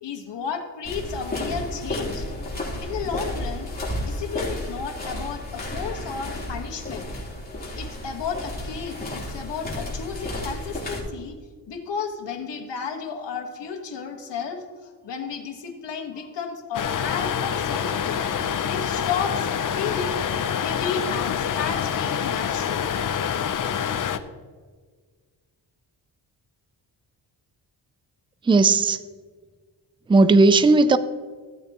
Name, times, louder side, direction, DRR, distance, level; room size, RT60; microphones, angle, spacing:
voice 1, 0.0-2.3 2.8-7.3 7.8-11.4 11.7-18.2 18.7-20.2 20.6-23.2, left 6 dB, 75° left, 4 dB, 1.7 m, -33 dB
sound 1, 0.8-11.0, left 1 dB, 20° left, 3.5 m, -32 dB
sound 2, 16.7-24.2, left 8 dB, 45° left, 0.7 m, -26 dB
voice 2, 28.4-29.0 30.1-31.0, right 3 dB, 10° right, 13 dB, 0.4 m, -16 dB
15.5 x 8.7 x 3.0 m, 1.5 s
cardioid pair, 100°, 43 cm